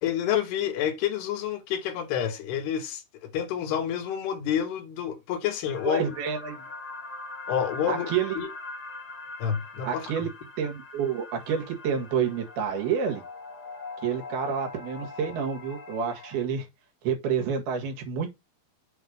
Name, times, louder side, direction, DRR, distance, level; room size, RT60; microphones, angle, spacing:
voice 1, 0.0-6.0 7.5-8.5 9.4-10.1, left 9 dB, 85° left, 3.4 m, -29 dB
sound 1, 5.6-16.4, left 3 dB, 40° left, 1.5 m, -42 dB
voice 2, 5.8-6.6 7.9-8.5 9.8-10.3 10.6-13.2 14.0-16.7 17.0-18.4, right 7 dB, 75° right, 3.8 m, -29 dB
7.9 x 3.5 x 6.5 m
omnidirectional pair, 4.5 m